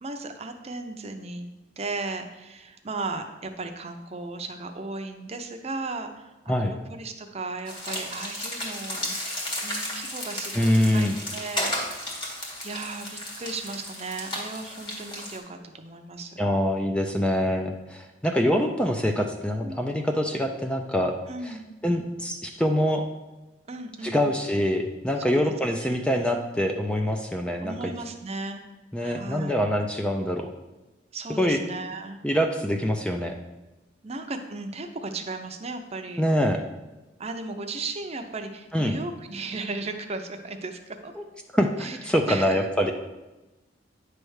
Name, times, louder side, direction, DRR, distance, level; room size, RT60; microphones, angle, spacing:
voice 1, 0.0-1.5 1.8-9.2 9.6-16.5 19.6-19.9 21.3-21.7 23.7-24.3 25.2-25.5 25.8-26.0 27.6-28.7 29.0-29.6 31.1-32.2 34.0-36.2 37.2-41.1 41.8-42.0 42.3-42.6, right 3 dB, 35° right, 6 dB, 0.6 m, -36 dB
sound 1, 7.7-15.4, left 1 dB, 25° left, 1.7 m, -34 dB
voice 2, 10.5-11.2 16.4-21.2 21.4-21.5 21.8-23.1 24.0-27.9 28.9-30.5 31.4-31.6 32.2-33.3 36.2-36.6 38.7-38.9 41.2-41.3 41.5-42.9, equal, 5° left, 3 dB, 0.4 m, -25 dB
9.5 x 3.3 x 6.3 m, 1.1 s
head